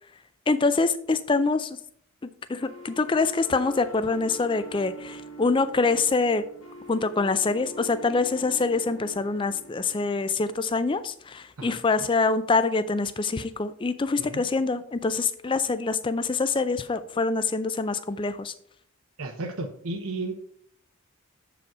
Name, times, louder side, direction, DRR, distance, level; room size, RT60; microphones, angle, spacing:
voice 1, 0.5-1.8 2.5-6.4 6.9-18.5, left 3 dB, 20° left, 13 dB, 0.3 m, -25 dB
sound 1, 2.6-10.6, left 1 dB, 65° left, 1.8 m, -44 dB
voice 2, 19.2-20.3, right 2 dB, 75° right, 4 dB, 0.8 m, -33 dB
7.5 x 4.9 x 4.7 m, 0.66 s
head